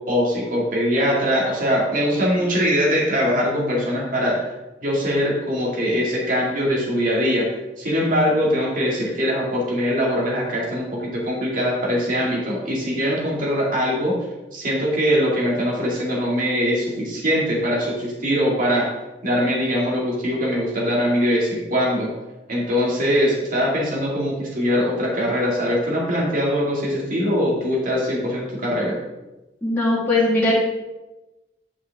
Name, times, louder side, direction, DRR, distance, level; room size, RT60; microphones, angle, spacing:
voice 1, 0.1-4.5 4.8-7.5 7.8-14.2 14.5-18.9 19.2-22.1 22.5-29.0, equal, 50° right, -3 dB, 2.1 m, -22 dB
voice 2, 29.6-30.5, left 2 dB, 10° left, -8 dB, 1.8 m, -19 dB
9.7 x 5.4 x 3.5 m, 1.1 s
head